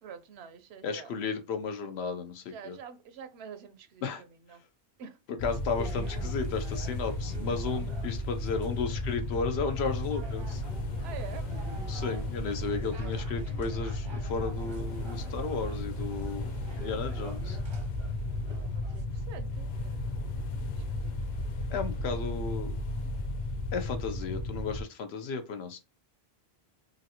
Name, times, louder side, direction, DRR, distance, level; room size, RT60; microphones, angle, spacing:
voice 1, 0.0-1.1 2.5-4.6 5.0-5.2 11.0-11.5 11.8-13.4 16.2-16.3 18.7-20.3 20.5-21.4, right 7 dB, 90° right, 0.9 m, -48 dB
voice 2, 0.8-2.8 4.0-4.2 5.4-10.6 11.9-16.5 16.8-17.6 21.7-22.7 23.7-25.8, left 5 dB, 85° left, 0.9 m, -34 dB
sound 1, 5.4-24.8, left 2 dB, 55° left, 0.6 m, -34 dB
sound 2, 5.7-19.1, right 7 dB, 35° right, 0.5 m, -44 dB
3.0 x 2.6 x 2.7 m
omnidirectional pair, 1.0 m